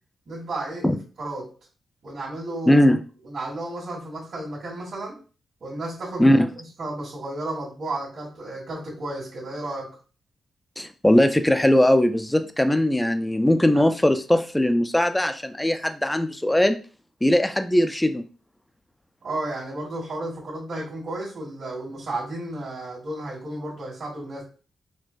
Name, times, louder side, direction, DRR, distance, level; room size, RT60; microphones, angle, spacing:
voice 1, 0.3-1.5 2.0-2.9 3.2-5.2 5.6-9.9 13.7-13.9 19.2-24.4, right 2 dB, 55° right, -8 dB, 1.6 m, -33 dB
voice 2, 2.7-3.0 6.2-6.5 10.8-16.8 17.2-18.2, left 1 dB, 10° left, 8 dB, 0.3 m, -20 dB
4.3 x 2.4 x 2.4 m, 0.36 s
cardioid pair, 115°, 0 cm